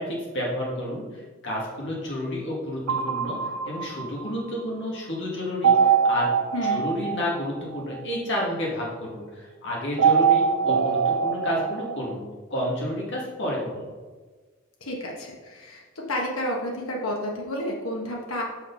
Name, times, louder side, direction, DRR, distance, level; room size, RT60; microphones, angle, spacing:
voice 1, 0.0-6.3 6.7-12.2 12.5-13.9, left 1 dB, 65° left, -3 dB, 2.4 m, -30 dB
sound 1, 2.9-4.6 5.6-8.2 10.0-12.1, right 6 dB, 80° right, 0.5 m, -23 dB
voice 2, 14.8-18.4, left 1 dB, 90° left, -1 dB, 1.4 m, -30 dB
6.3 x 5.7 x 5.6 m, 1.4 s
head